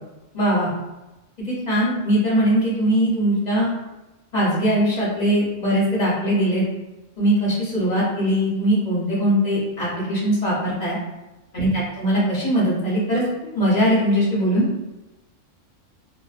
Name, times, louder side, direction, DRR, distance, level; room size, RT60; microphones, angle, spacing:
voice 1, 0.3-0.7 1.5-3.7 4.3-6.6 7.2-11.0 11.5-13.2 13.5-14.6, equal, 40° left, -7 dB, 0.7 m, -20 dB
2.5 x 2.3 x 2.4 m, 1.0 s
omnidirectional pair, 1.4 m